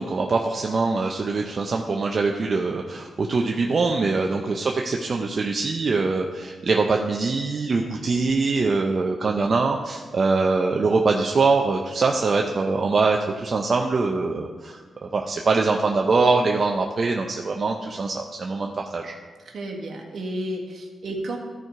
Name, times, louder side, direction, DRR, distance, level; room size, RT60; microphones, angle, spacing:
voice 1, 0.0-19.1, right 4 dB, 50° right, 1 dB, 0.7 m, -23 dB
voice 2, 19.4-21.4, right 1 dB, 70° right, 0 dB, 1.7 m, -32 dB
13.5 x 4.6 x 4.9 m, 1.4 s
cardioid pair, 75°, 0 cm